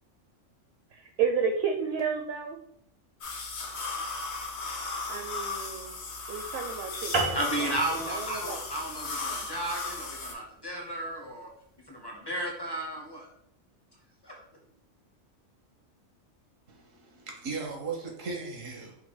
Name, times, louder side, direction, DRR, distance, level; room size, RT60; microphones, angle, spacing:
voice 1, 0.9-2.6 5.1-6.0 6.3-7.7 8.1-8.6, right 6 dB, 65° right, 0.7 m, -32 dB
sound 1, 3.2-10.3, left 3 dB, 60° left, 1.0 m, -36 dB
sound 2, 7.1-11.9, right 3 dB, 40° right, 0.4 m, -35 dB
voice 2, 7.3-11.5 11.9-13.3 14.2-14.3, right 1 dB, 30° left, 0.5 m, -34 dB
voice 3, 16.7-19.0, right 4 dB, 85° right, 1.4 m, -37 dB
5.2 x 2.2 x 3.8 m
omnidirectional pair, 1.3 m